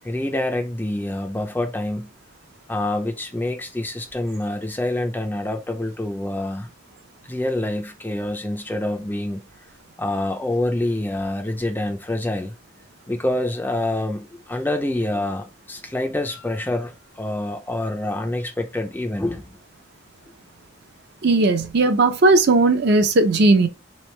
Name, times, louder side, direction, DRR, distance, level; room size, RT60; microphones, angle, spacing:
voice 1, 0.0-2.1 2.7-6.7 7.2-9.4 10.0-12.5 13.1-19.5, left 1 dB, 10° left, 0.4 m, -26 dB
voice 2, 21.2-23.7, right 2 dB, 55° right, 0.5 m, -16 dB
3.4 x 3.2 x 3.1 m
head